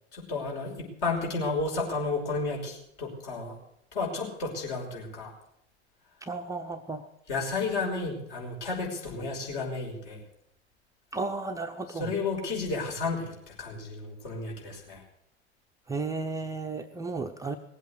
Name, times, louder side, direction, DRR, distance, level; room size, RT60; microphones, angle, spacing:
voice 1, 0.1-3.6 3.9-5.3 7.3-10.2 12.0-15.0, left 3 dB, 50° left, -1 dB, 5.6 m, -32 dB
voice 2, 6.2-7.1 11.1-12.1 15.9-17.6, right 3 dB, 10° right, 5 dB, 0.6 m, -34 dB
19.0 x 8.2 x 8.3 m, 0.74 s
figure-of-eight pair, 85°, 34 cm